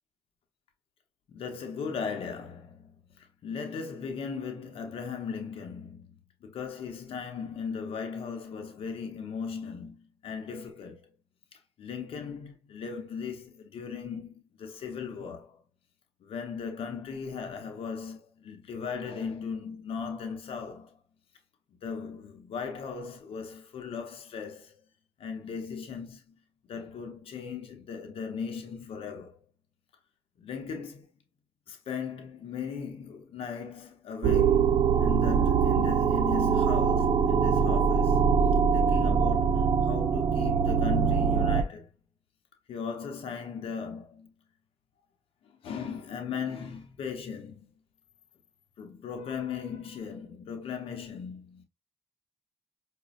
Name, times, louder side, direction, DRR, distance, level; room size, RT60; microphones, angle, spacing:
voice 1, 1.3-11.1 11.5-15.6 16.2-21.0 21.8-24.8 25.2-26.3 26.7-29.4 30.4-31.1 31.7-38.2 38.7-41.9 42.7-44.3 45.4-47.7 48.8-51.6, left 6 dB, 80° left, 0.7 m, -38 dB
sound 1, 34.2-41.6, right 6 dB, 70° right, 0.5 m, -23 dB
5.0 x 2.2 x 2.3 m
supercardioid pair, 45°, 10 cm